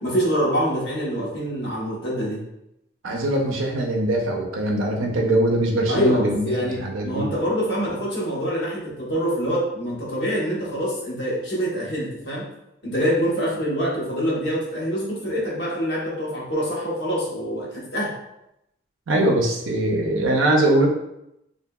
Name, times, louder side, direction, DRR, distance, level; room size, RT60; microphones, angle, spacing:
voice 1, 0.0-2.4 5.9-12.4 12.8-18.1, equal, 60° left, -6 dB, 1.0 m, -25 dB
voice 2, 3.0-7.3 19.1-20.9, right 1 dB, 85° right, 0 dB, 0.5 m, -22 dB
2.7 x 2.5 x 2.2 m, 0.84 s
head